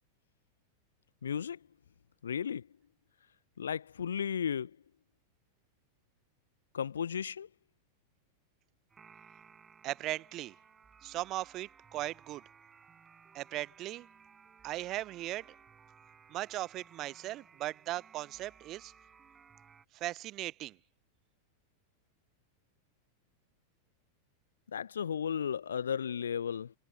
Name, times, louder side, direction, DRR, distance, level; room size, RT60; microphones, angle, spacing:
voice 1, 1.2-1.6 2.2-2.7 3.6-4.7 6.7-7.5 24.7-26.7, left 7 dB, 70° left, 0.7 m, -34 dB
sound 1, 8.9-19.9, right 6 dB, 20° right, 5.0 m, -59 dB
voice 2, 9.8-10.5 11.0-12.4 13.3-14.1 14.6-15.5 16.3-18.9 19.9-20.8, right 15 dB, 35° right, 0.6 m, -38 dB
figure-of-eight pair, 90°, 0 cm